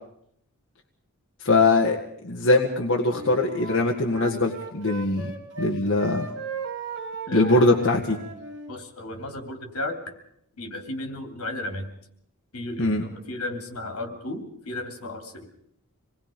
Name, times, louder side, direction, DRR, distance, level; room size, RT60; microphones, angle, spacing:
voice 1, 1.4-2.0 2.2-5.3 5.6-6.3 7.3-8.2 12.8-13.0, left 2 dB, 55° left, -1 dB, 1.8 m, -21 dB
Wind instrument woodwind instrument, 3.1-5.7 6.0-8.7, right 2 dB, 55° right, 3.5 m, -36 dB
voice 2, 7.3-7.7 8.7-10.1 10.6-11.9 12.5-15.4, left 1 dB, 75° left, 5 dB, 3.3 m, -34 dB
27.0 x 20.5 x 5.3 m, 0.70 s
head